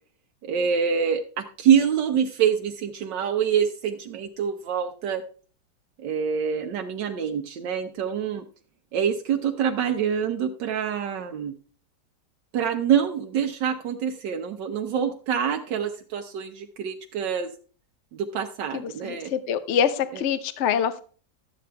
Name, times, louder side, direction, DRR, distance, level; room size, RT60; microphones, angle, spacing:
voice 1, 0.4-5.2 6.0-8.4 8.9-11.5 12.5-17.5 18.1-19.3 20.1-20.2, right 8 dB, 80° right, 4 dB, 1.4 m, -25 dB
voice 2, 18.7-21.0, left 8 dB, 55° left, 12 dB, 0.9 m, -25 dB
12.5 x 8.5 x 3.4 m, 0.41 s
omnidirectional pair, 1.9 m